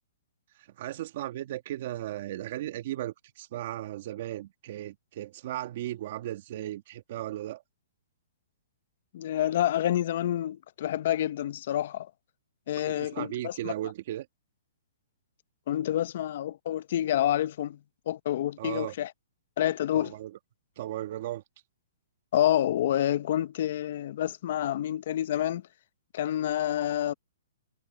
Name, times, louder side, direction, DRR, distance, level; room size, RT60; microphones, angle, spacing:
voice 1, 0.6-7.6 12.9-14.3 18.6-19.0 19.9-20.4 20.8-21.4, right 13 dB, 50° right, 1.7 m, -36 dB
voice 2, 9.1-12.1 12.7-13.7 15.7-17.8 18.1-19.1 19.6-20.1 22.3-25.6 26.1-27.1, left 12 dB, 55° left, 0.9 m, -28 dB
hypercardioid pair, 145°, 0 cm